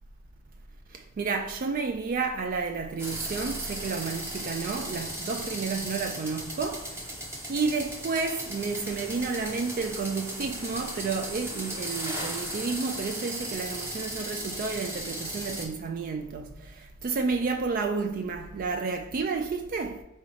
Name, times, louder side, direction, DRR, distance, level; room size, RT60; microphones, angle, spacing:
voice 1, 0.9-6.9 7.5-20.0, right 4 dB, 45° right, 0.3 m, -31 dB
sound 1, 3.0-15.7, right 1 dB, 15° right, 0.9 m, -36 dB
4.0 x 3.7 x 3.2 m
head